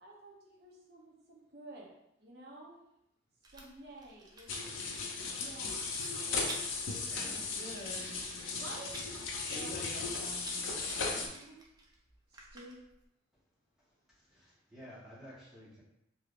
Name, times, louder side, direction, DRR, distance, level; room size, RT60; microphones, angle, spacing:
voice 1, 0.0-1.9 2.2-2.8 3.5-4.5 5.4-5.9 8.5-8.9 9.5-9.8 11.0-11.6 12.3-12.8, right 2 dB, 55° right, -3 dB, 0.7 m, -51 dB
Rattle, 3.4-13.0, right 2 dB, 20° right, 0.3 m, -52 dB
sound 1, 4.5-11.3, left 4 dB, 85° left, 0.5 m, -37 dB
voice 2, 7.0-8.1 9.4-11.3, equal, 55° left, -4 dB, 0.7 m, -46 dB
voice 3, 14.2-15.8, equal, 5° right, -9 dB, 0.9 m, -53 dB
3.3 x 2.7 x 2.4 m, 0.82 s
head